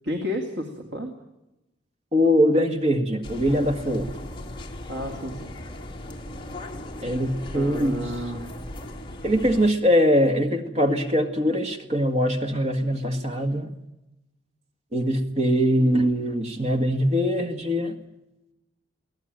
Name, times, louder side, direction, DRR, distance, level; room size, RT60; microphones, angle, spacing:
voice 1, 0.0-1.1 4.9-5.5 7.5-8.6, left 1 dB, 65° right, 3 dB, 2.7 m, -32 dB
voice 2, 2.1-4.1 7.0-8.0 9.2-13.8 14.9-18.0, equal, 35° right, 6 dB, 1.9 m, -22 dB
sound 1, 3.2-9.7, left 1 dB, 25° left, 2.2 m, -38 dB
23.5 x 17.0 x 9.0 m, 0.97 s
head